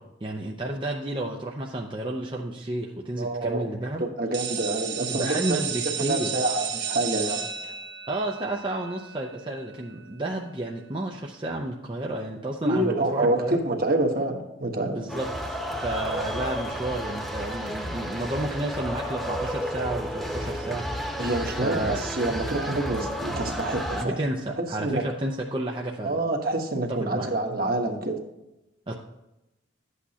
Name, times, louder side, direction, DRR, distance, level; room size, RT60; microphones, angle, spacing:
voice 1, 0.0-4.0 5.1-6.3 8.1-13.6 14.9-21.1 21.6-22.0 24.0-26.2 26.9-27.3 28.9-29.0, right 1 dB, 25° right, 0 dB, 0.6 m, -31 dB
voice 2, 3.2-3.7 4.0-5.6 6.1-7.7 12.6-15.0 21.2-24.2 24.6-25.0 26.0-28.2, right 2 dB, 50° right, 3 dB, 1.3 m, -27 dB
sound 1, 4.3-10.0, right 8 dB, 65° right, 1.2 m, -33 dB
sound 2, 15.1-24.0, equal, ahead, 1.1 m, -32 dB
12.5 x 8.3 x 2.9 m, 0.94 s
head